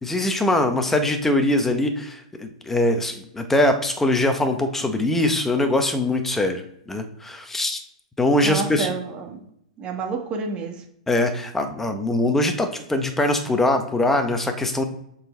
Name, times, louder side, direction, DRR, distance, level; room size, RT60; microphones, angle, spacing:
voice 1, 0.0-7.8 8.2-8.9 11.1-14.8, left 1 dB, 5° left, 6 dB, 0.9 m, -22 dB
voice 2, 8.4-9.4 9.8-10.8, right 4 dB, 25° right, 2 dB, 1.3 m, -29 dB
6.6 x 4.0 x 4.4 m, 0.76 s
hypercardioid pair, 135°, 4 cm